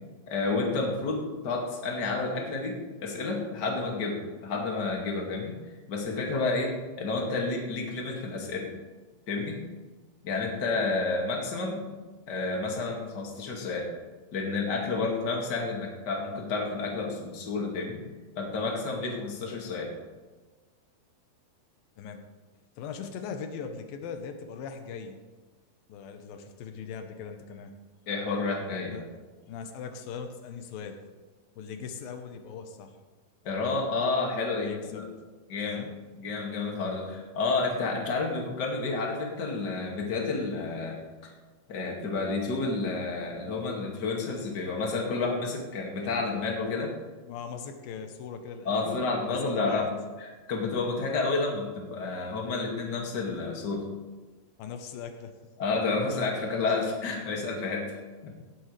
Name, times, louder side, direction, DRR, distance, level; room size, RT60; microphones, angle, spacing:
voice 1, 0.3-5.6 5.9-8.7 9.3-9.6 10.2-11.9 12.3-13.9 14.3-18.0 18.4-19.9 28.1-29.0 33.4-35.1 35.5-35.8 36.2-41.3 41.7-46.9 48.6-49.9 50.2-53.9 55.6-58.3, left 3 dB, 35° left, 0 dB, 2.2 m, -30 dB
voice 2, 22.8-25.2 25.9-27.7 28.9-29.1 29.5-31.0 31.6-33.0 34.5-35.1 35.6-35.9 47.3-49.9 54.6-55.3, left 6 dB, 85° left, 6 dB, 2.7 m, -40 dB
17.5 x 11.5 x 3.3 m, 1.3 s
omnidirectional pair, 4.1 m